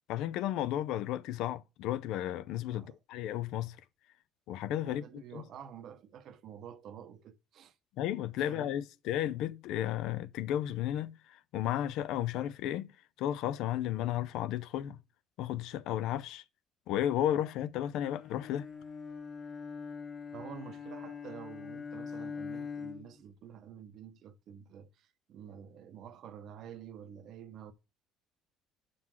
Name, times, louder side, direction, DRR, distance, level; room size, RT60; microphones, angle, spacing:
voice 1, 0.1-3.8 4.5-5.0 5.3-5.4 8.0-12.9 13.2-15.0 15.4-16.4 16.9-18.6, left 12 dB, 70° left, 0.5 m, -33 dB
voice 2, 4.8-7.8 8.4-8.8 20.3-27.7, right 8 dB, 55° right, 0.7 m, -49 dB
Bowed string instrument, 18.0-23.2, left 5 dB, 35° left, 1.3 m, -43 dB
5.8 x 3.9 x 6.0 m
cardioid pair, 115°, 0 cm